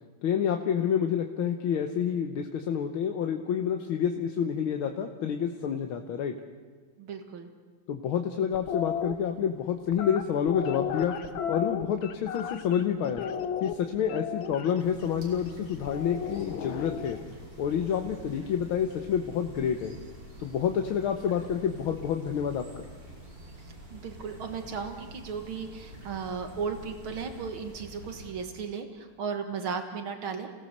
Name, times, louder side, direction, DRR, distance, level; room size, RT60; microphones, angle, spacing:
voice 1, 0.2-6.3 7.9-11.2 11.5-13.3 13.6-17.2 17.6-20.0 20.4-22.9, left 8 dB, 90° left, 5 dB, 1.9 m, -28 dB
voice 2, 7.0-7.5 23.9-30.5, right 6 dB, 80° right, 5 dB, 2.3 m, -35 dB
sound 1, 8.5-9.1 9.9-12.8 13.2-14.7 15.9-17.2, left 8 dB, 75° left, 1.8 m, -34 dB
sound 2, 14.8-28.3, equal, 65° right, 5.8 m, -47 dB
29.0 x 17.5 x 6.7 m, 1.5 s
omnidirectional pair, 2.2 m